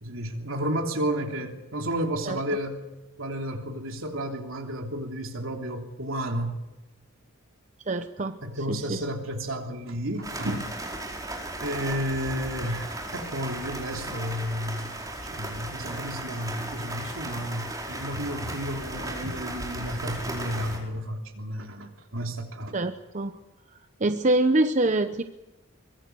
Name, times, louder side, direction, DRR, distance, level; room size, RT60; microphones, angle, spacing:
voice 1, 0.0-2.9 3.2-6.6 8.4-10.7 11.6-14.9 15.3-22.7, equal, 65° right, 3 dB, 3.2 m, -32 dB
voice 2, 7.9-8.4 8.7-9.0 22.7-23.4 24.0-25.2, right 2 dB, 35° right, 8 dB, 0.8 m, -25 dB
sound 1, 10.2-20.8, right 1 dB, 15° right, 4.6 m, -36 dB
23.5 x 22.5 x 6.9 m, 1.1 s
head